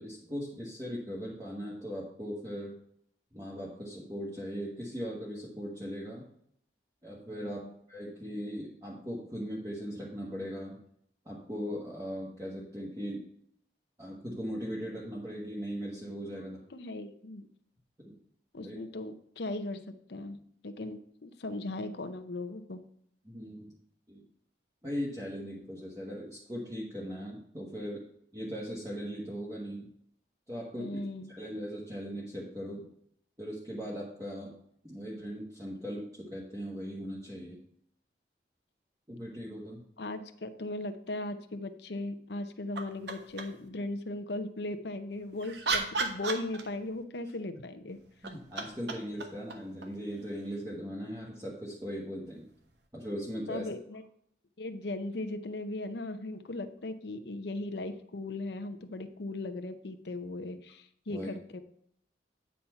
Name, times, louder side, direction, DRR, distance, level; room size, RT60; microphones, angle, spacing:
voice 1, 0.0-2.7 3.3-6.2 7.0-10.8 11.2-13.2 14.0-16.6 18.0-18.1 18.6-18.8 23.2-23.7 24.1-24.2 24.8-28.0 28.3-29.9 30.5-31.0 31.3-32.9 33.4-34.5 34.8-37.6 39.1-39.8 47.5-47.6 48.2-52.5 52.9-53.7 61.1-61.3, equal, 20° right, -5 dB, 1.4 m, -39 dB
voice 2, 7.4-7.7 16.4-17.5 18.5-20.4 20.6-22.8 30.8-31.3 40.0-48.0 53.5-54.0 54.6-61.6, left 2 dB, 70° left, 9 dB, 0.7 m, -38 dB
sound 1, 42.7-43.7 45.1-47.0 48.0-50.6 52.7-52.8, right 4 dB, 75° right, 1.0 m, -36 dB
9.3 x 4.3 x 5.6 m, 0.67 s
head